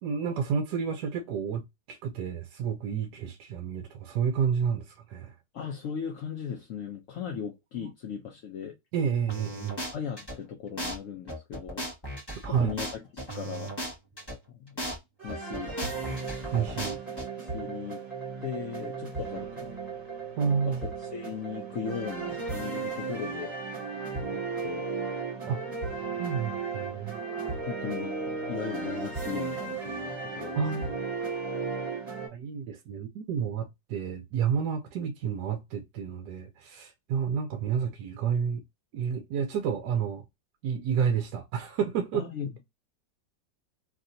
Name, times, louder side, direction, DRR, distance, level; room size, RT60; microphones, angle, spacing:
voice 1, 0.0-5.3 7.8-7.9 8.9-9.8 12.4-12.7 16.5-17.0 20.4-20.8 25.5-25.6 26.2-27.2 30.6-30.9 32.3-38.6 38.9-40.2 40.6-42.2, right 7 dB, 75° right, 1.0 m, -30 dB
voice 2, 5.5-8.7 9.9-11.8 12.6-13.0 13.3-13.7 14.5-14.7 15.2-15.7 17.4-18.0 18.4-19.7 20.6-23.5 24.3-24.9 27.7-28.1 28.5-30.9 31.5-31.6 42.1-42.6, left 7 dB, 70° left, 0.8 m, -37 dB
sound 1, 9.3-10.4 10.8-11.0 11.3-14.4 14.8-15.0 15.3-17.3, equal, 15° left, 1.0 m, -36 dB
sound 2, 15.2-32.3, right 4 dB, 25° right, 1.3 m, -35 dB
3.3 x 2.7 x 2.6 m
omnidirectional pair, 2.0 m